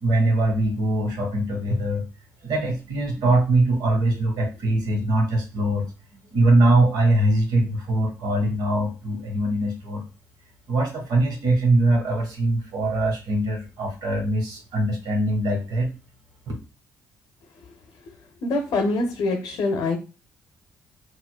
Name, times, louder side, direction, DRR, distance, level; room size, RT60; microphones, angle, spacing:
voice 1, 0.0-2.0 2.4-5.9 6.3-10.0 10.7-15.9 16.5-16.6, right 1 dB, 70° right, 1 dB, 1.2 m, -22 dB
voice 2, 18.4-20.0, left 2 dB, 65° left, 4 dB, 0.6 m, -24 dB
4.2 x 2.3 x 2.3 m, 0.32 s
hypercardioid pair, 50°, 7 cm